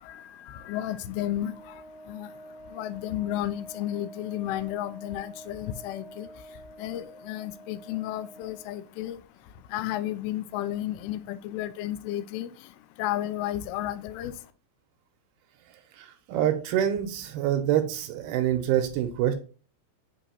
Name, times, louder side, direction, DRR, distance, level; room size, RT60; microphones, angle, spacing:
voice 1, 0.1-1.5 2.1-2.3 2.7-6.3 6.8-9.2 9.7-12.5 13.0-14.3, left 13 dB, 90° left, 2.2 m, -32 dB
Wind instrument woodwind instrument, 1.1-8.9, equal, 65° left, 3.2 m, -47 dB
voice 2, 16.0-19.3, right 11 dB, 85° right, 2.3 m, -26 dB
7.9 x 3.0 x 4.3 m
omnidirectional pair, 5.2 m